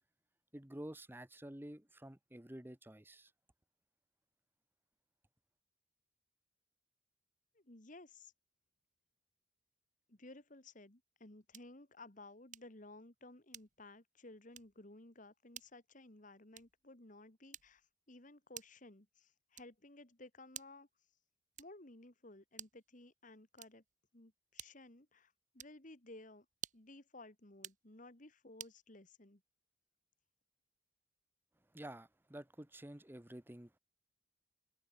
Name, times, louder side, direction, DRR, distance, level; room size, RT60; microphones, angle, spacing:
voice 1, 0.5-3.3 31.7-33.8, right 1 dB, 10° right, 1.0 m, -50 dB
voice 2, 7.5-8.3 10.1-20.9 21.6-23.8 24.1-26.5 26.7-29.4, left 2 dB, 40° left, 2.0 m, -56 dB
sound 1, 11.5-11.8 12.5-12.8 13.5-14.0 14.5-14.8 15.5-15.8 16.5-16.9 17.5-17.9 18.5-18.9 19.5-19.9 20.5-20.9 21.5-21.9 22.5-22.9 23.5-23.9 24.6-25.0 25.5-25.8 26.5-27.0 27.5-27.9 28.6-28.8, right 10 dB, 40° right, 2.3 m, -52 dB
head